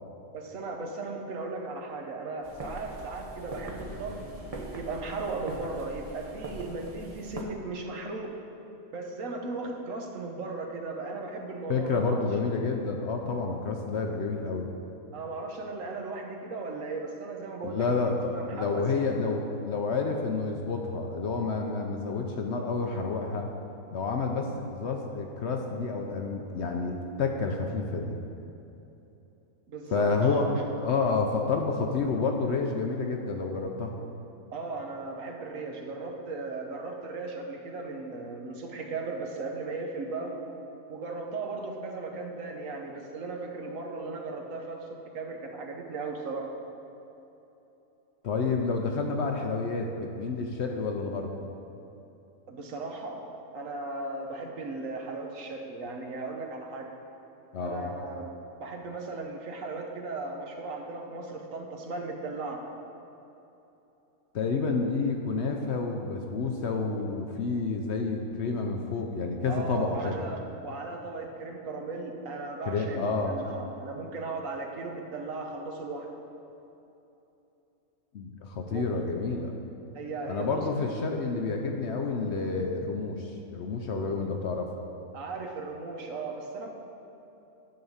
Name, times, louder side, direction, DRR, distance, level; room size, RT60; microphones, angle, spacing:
voice 1, 0.3-4.2 4.7-8.3 8.9-12.2 15.1-19.0 29.7-30.6 34.5-40.4 40.9-46.5 52.5-56.9 57.6-58.3 58.6-62.6 69.5-76.1 78.7-78.9 79.9-80.6 85.1-86.7, right 3 dB, 65° right, 2 dB, 1.2 m, -37 dB
sound 1, 2.4-7.4, right 1 dB, 30° right, 0.7 m, -41 dB
voice 2, 11.7-14.7 17.6-18.2 18.5-23.5 23.9-28.2 29.9-30.4 30.8-33.9 48.2-51.3 57.5-57.9 64.3-70.2 72.7-73.4 78.1-79.5 80.3-84.7, left 4 dB, 60° left, 2 dB, 0.8 m, -29 dB
10.5 x 3.9 x 7.1 m, 3.0 s
omnidirectional pair, 1.5 m